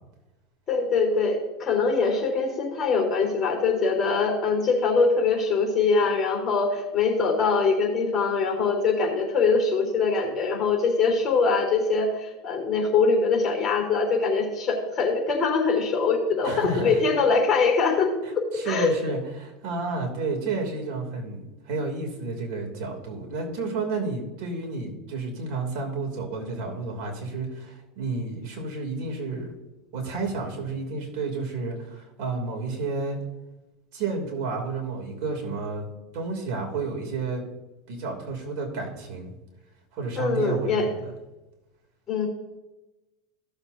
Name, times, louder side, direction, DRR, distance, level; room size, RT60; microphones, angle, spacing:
voice 1, 0.7-18.9 40.2-40.9 42.1-42.3, left 4 dB, 25° left, 1 dB, 3.7 m, -23 dB
voice 2, 16.4-17.0 18.2-29.5 29.9-33.2 33.9-35.9 36.1-37.4 37.9-39.3 39.9-41.1, right 3 dB, 60° right, 1 dB, 2.9 m, -31 dB
16.0 x 7.0 x 2.7 m, 1.0 s
supercardioid pair, 130°, 0 cm